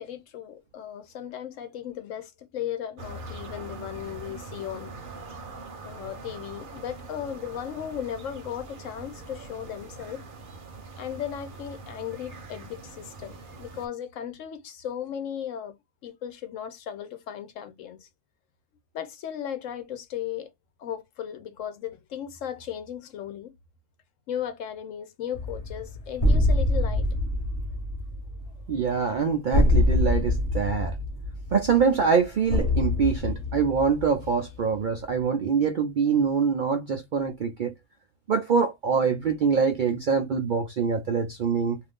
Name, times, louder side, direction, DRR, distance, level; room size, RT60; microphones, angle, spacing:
voice 1, 0.0-5.0 5.8-10.2 11.0-15.8 16.0-18.1 18.9-20.5 20.8-23.5 24.3-27.2, left 9 dB, 75° left, 1.0 m, -36 dB
sound 1, 3.0-13.9, right 3 dB, 45° right, 0.9 m, -42 dB
sound 2, 25.3-34.8, left 2 dB, 30° left, 1.0 m, -25 dB
voice 2, 28.7-31.0 31.5-37.7 38.3-41.8, right 6 dB, 65° right, 0.5 m, -24 dB
2.6 x 2.5 x 3.5 m
omnidirectional pair, 1.4 m